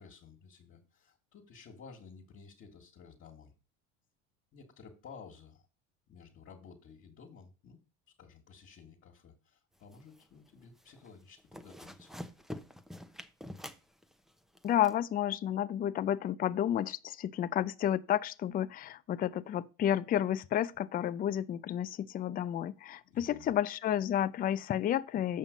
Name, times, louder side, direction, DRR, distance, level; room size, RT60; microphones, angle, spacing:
voice 1, 0.0-3.5 4.5-5.7 6.1-7.8 8.2-12.1 23.0-23.5, left 5 dB, 45° left, 1.8 m, -54 dB
sound 1, 9.8-10.5 10.8-11.1 11.4-14.9, left 1 dB, ahead, 0.7 m, -46 dB
voice 2, 14.6-25.4, left 11 dB, 30° left, 0.4 m, -31 dB
7.5 x 5.6 x 5.1 m
supercardioid pair, 115°, 31 cm